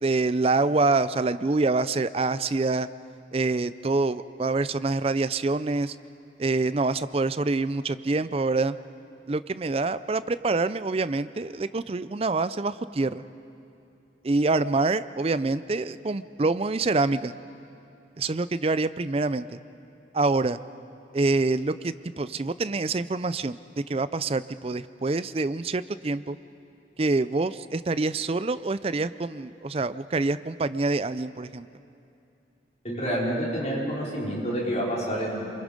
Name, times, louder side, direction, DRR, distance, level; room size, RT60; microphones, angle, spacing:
voice 1, 0.0-2.9 3.3-6.0 6.4-8.8 9.3-13.2 14.2-17.3 18.2-19.6 20.1-20.6 21.1-23.6 23.9-26.4 27.0-31.7, right 3 dB, 30° right, 14 dB, 0.4 m, -26 dB
voice 2, 32.8-35.5, equal, 35° left, -5 dB, 4.7 m, -28 dB
27.0 x 23.0 x 5.2 m, 2.7 s
head